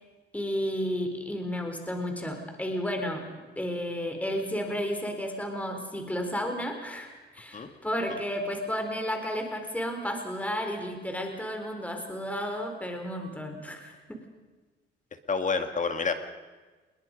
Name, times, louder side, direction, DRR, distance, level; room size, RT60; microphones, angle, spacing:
voice 1, 0.3-14.2, equal, 5° left, 4 dB, 3.9 m, -32 dB
voice 2, 15.3-16.1, left 5 dB, 40° left, 7 dB, 2.1 m, -28 dB
28.0 x 21.5 x 5.3 m, 1.3 s
cardioid pair, 90°, 20 cm